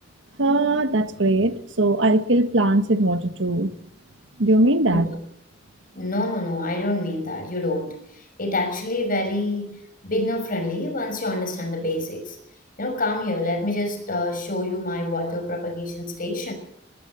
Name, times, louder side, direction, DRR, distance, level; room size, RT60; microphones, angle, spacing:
voice 1, 0.4-3.7 4.4-5.1, right 2 dB, 75° right, 1.6 m, -20 dB
voice 2, 5.9-8.0 8.4-9.8 10.0-12.4 12.8-16.5, left 2 dB, 50° left, 5.9 m, -27 dB
21.5 x 15.0 x 9.2 m
head